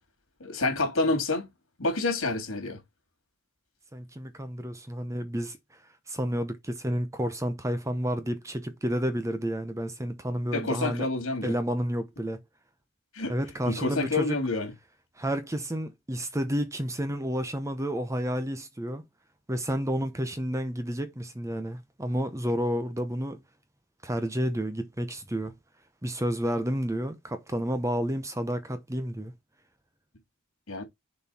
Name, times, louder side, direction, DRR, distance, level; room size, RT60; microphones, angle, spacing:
voice 1, 0.4-1.5 1.8-2.8 10.5-11.5 13.1-13.3 13.6-14.7 30.7-30.8, left 2 dB, 65° left, 3.2 m, -28 dB
voice 2, 3.9-5.6 6.1-11.1 11.4-12.4 13.3-14.4 15.2-19.0 19.5-23.4 24.0-25.5 26.0-29.3, equal, 15° right, 0.7 m, -30 dB
6.9 x 4.4 x 4.3 m
head